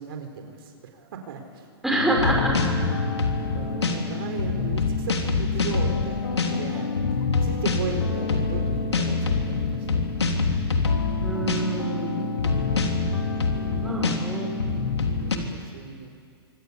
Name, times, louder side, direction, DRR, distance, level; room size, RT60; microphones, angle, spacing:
voice 1, 0.0-1.7 2.8-6.9 7.4-10.0 12.0-12.7 13.6-16.1, right 6 dB, 60° right, 4 dB, 4.1 m, -37 dB
voice 2, 1.8-2.6 11.2-12.3 13.8-14.5, right 2 dB, ahead, -1 dB, 5.9 m, -26 dB
sound 1, 1.9-15.4, left 4 dB, 90° left, 3.3 m, -25 dB
25.5 x 25.0 x 8.5 m, 2.2 s
hypercardioid pair, 125°, 14 cm